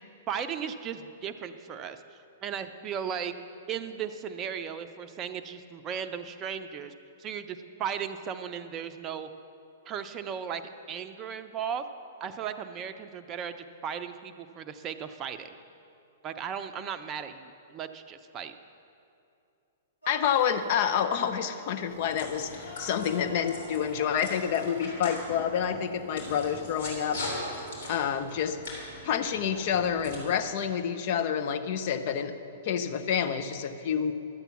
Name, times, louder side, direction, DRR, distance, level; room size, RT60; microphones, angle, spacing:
voice 1, 0.3-2.0 2.4-3.3 3.7-6.9 7.2-9.3 9.9-10.6 10.9-11.9 12.2-13.5 13.8-15.6 16.2-18.5, right 8 dB, 30° right, 9 dB, 0.6 m, -36 dB
sound 1, 20.0-27.5, left 2 dB, 85° left, 2.4 m, -47 dB
voice 2, 20.1-27.2 27.9-28.6 29.0-32.3 32.6-34.1, left 8 dB, 45° left, 8 dB, 0.7 m, -28 dB
sound 2, 21.9-30.2, left 1 dB, 60° left, 3.4 m, -41 dB
12.0 x 8.1 x 5.9 m, 2.6 s
figure-of-eight pair, 110°, 0 cm